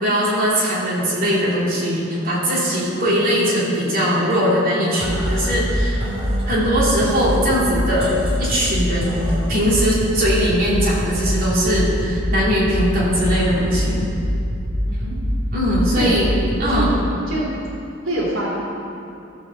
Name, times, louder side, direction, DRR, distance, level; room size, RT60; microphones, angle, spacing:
voice 1, 0.0-6.0 6.4-8.1 8.4-9.2 9.5-14.0 15.5-16.3 16.6-16.9, equal, 45° right, -7 dB, 3.0 m, -20 dB
sound 1, 5.0-17.0, equal, 30° right, 2.6 m, -24 dB
voice 2, 16.6-17.5 18.0-18.5, right 1 dB, 90° right, -4 dB, 2.7 m, -26 dB
15.0 x 5.0 x 6.9 m, 2.7 s
head